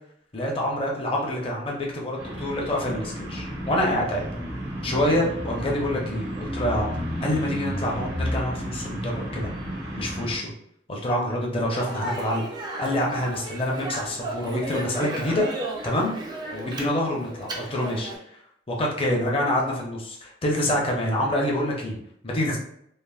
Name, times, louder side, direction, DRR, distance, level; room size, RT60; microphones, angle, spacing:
voice 1, 0.3-4.2 4.8-9.5 9.9-10.5 10.9-12.5 12.8-15.5 15.8-16.1 16.5-18.1 18.7-22.0 22.2-22.6, left 1 dB, 30° left, -2 dB, 0.6 m, -26 dB
sound 1, 2.2-10.4, equal, 70° right, 0.9 m, -32 dB
Speech, 11.7-18.2, right 1 dB, 25° right, 0.4 m, -35 dB
3.2 x 2.0 x 2.3 m, 0.72 s
head